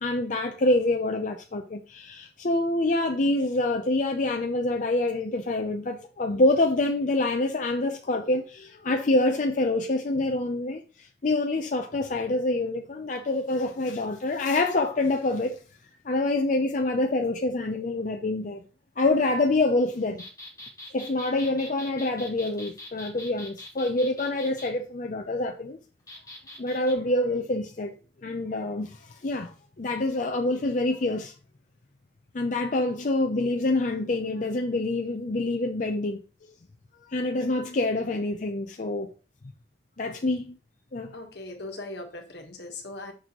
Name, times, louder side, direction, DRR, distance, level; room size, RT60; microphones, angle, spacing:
voice 1, 0.0-15.6 16.0-18.6 19.0-20.2 20.9-25.8 26.6-31.3 32.3-36.2 37.1-39.1 40.0-40.6 40.9-41.1, left 2 dB, 45° left, 0.6 m, -26 dB
sound 1, 20.2-24.7 26.1-26.9, left 1 dB, 20° left, 1.6 m, -43 dB
voice 2, 41.1-43.1, left 2 dB, 70° left, 1.4 m, -39 dB
6.5 x 6.2 x 3.0 m
head